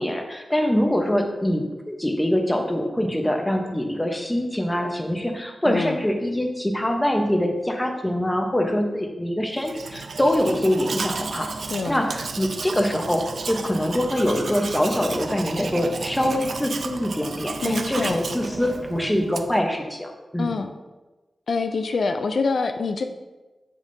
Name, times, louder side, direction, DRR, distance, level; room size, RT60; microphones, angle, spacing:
voice 1, 0.0-11.5 11.9-20.5, left 1 dB, 10° left, 3 dB, 0.9 m, -24 dB
voice 2, 5.6-6.0 11.7-12.1 17.6-18.2 20.4-20.7 21.5-23.0, left 4 dB, 75° left, 6 dB, 0.4 m, -25 dB
Domestic sounds home sounds, 9.6-19.7, right 4 dB, 70° right, 0.4 m, -33 dB
7.3 x 6.5 x 2.7 m, 1.2 s
wide cardioid pair, 85°, 0 cm